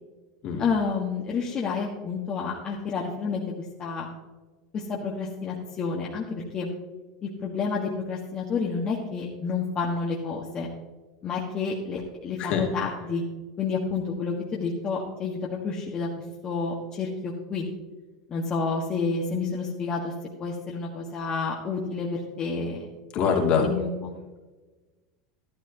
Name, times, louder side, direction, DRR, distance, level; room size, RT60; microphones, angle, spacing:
voice 1, 0.6-4.1 4.7-6.7 7.2-10.7 11.2-13.2 13.6-16.1 16.4-17.7 18.3-20.1 20.4-22.8 23.6-24.1, left 4 dB, 35° left, -3 dB, 1.7 m, -29 dB
voice 2, 23.1-23.7, left 6 dB, 50° left, 0 dB, 2.8 m, -23 dB
12.0 x 12.0 x 3.0 m, 1.2 s
hypercardioid pair, 100°, 2 cm